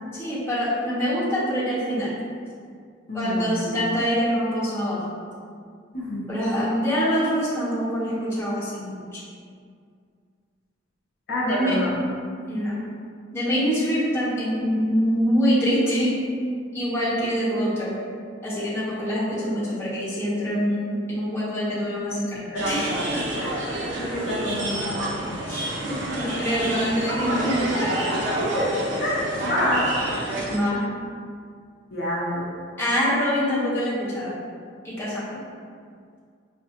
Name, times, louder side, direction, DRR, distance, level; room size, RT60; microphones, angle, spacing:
voice 1, 0.1-2.2 3.1-5.1 6.3-9.2 11.4-11.8 12.5-12.8 13.3-16.2 16.7-18.0 18.4-22.4 22.6-22.9 25.5-28.1 30.5-30.8 32.8-34.4 34.8-35.4, equal, 10° left, -10 dB, 1.0 m, -25 dB
voice 2, 3.1-3.9 5.9-6.2 11.3-12.0 22.5-22.9 23.1-23.6 24.0-24.8 28.1-29.9 31.9-32.5, left 1 dB, 50° left, -7 dB, 0.7 m, -28 dB
sound 1, 22.6-30.6, right 1 dB, 65° right, 0.6 m, -28 dB
5.6 x 2.2 x 2.9 m, 2.1 s
head